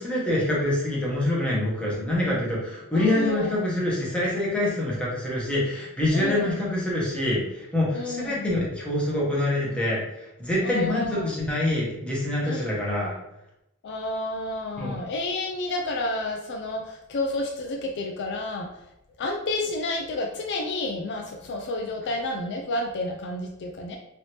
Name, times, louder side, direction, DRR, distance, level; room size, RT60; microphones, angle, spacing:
voice 1, 0.0-13.2 14.8-15.0, left 1 dB, 5° left, -6 dB, 0.9 m, -26 dB
voice 2, 2.9-3.6 6.1-6.6 7.9-8.5 10.6-11.3 12.4-12.8 13.8-18.7 19.2-24.0, left 2 dB, 50° left, 2 dB, 0.3 m, -30 dB
3.2 x 2.7 x 2.9 m, 0.84 s
head